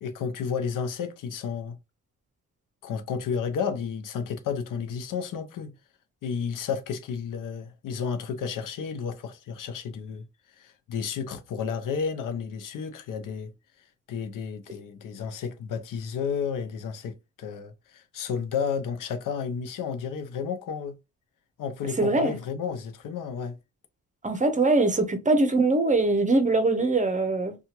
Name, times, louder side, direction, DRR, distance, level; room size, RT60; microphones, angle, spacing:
voice 1, 0.0-1.8 2.8-5.7 6.2-10.3 10.6-13.5 14.1-20.9 21.6-23.6, left 6 dB, 80° left, 0.6 m, -32 dB
voice 2, 22.0-22.4 24.2-27.6, right 2 dB, 25° right, 0.7 m, -22 dB
2.8 x 2.4 x 2.8 m
cardioid pair, 85°, 32 cm